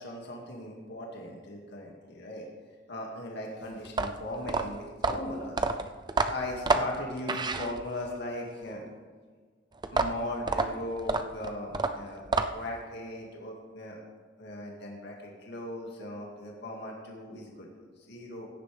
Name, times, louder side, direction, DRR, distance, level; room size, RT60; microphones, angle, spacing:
voice 1, 0.0-2.5 2.9-5.6 6.3-8.8 9.9-14.0 14.4-18.5, left 1 dB, 60° left, -1 dB, 2.0 m, -38 dB
sound 1, 3.9-8.2 9.8-12.8, right 3 dB, 25° right, 0.5 m, -29 dB
16.0 x 10.5 x 3.4 m, 1.5 s
head